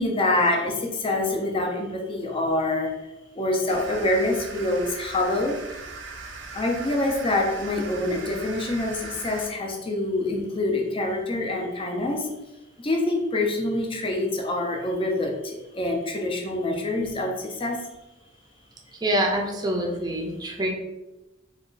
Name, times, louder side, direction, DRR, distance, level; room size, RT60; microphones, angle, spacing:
voice 1, 0.0-2.9 3.4-5.6 6.5-12.3 12.8-15.3 15.7-17.8, left 2 dB, 30° left, 1 dB, 0.5 m, -25 dB
sound 1, 3.7-9.5, right 3 dB, 70° right, 0.5 m, -39 dB
voice 2, 18.9-20.7, right 1 dB, 20° right, 1 dB, 0.5 m, -26 dB
3.0 x 2.3 x 3.7 m, 1.0 s
head